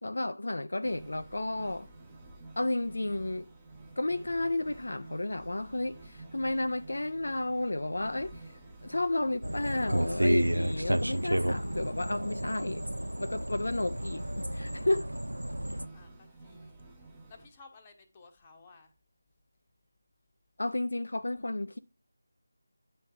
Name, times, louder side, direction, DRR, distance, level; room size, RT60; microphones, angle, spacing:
voice 1, 0.0-1.9 2.6-3.5 4.0-8.5 8.8-12.8 13.2-15.1 20.6-21.8, left 2 dB, 60° left, 0.3 m, -32 dB
sound 1, 0.8-17.5, right 2 dB, 10° right, 0.8 m, -51 dB
sound 2, 9.4-15.9, right 1 dB, 80° right, 0.4 m, -31 dB
voice 2, 15.9-16.9 17.3-18.9, left 4 dB, 20° left, 0.9 m, -56 dB
9.1 x 3.2 x 4.6 m
figure-of-eight pair, 160°, 0 cm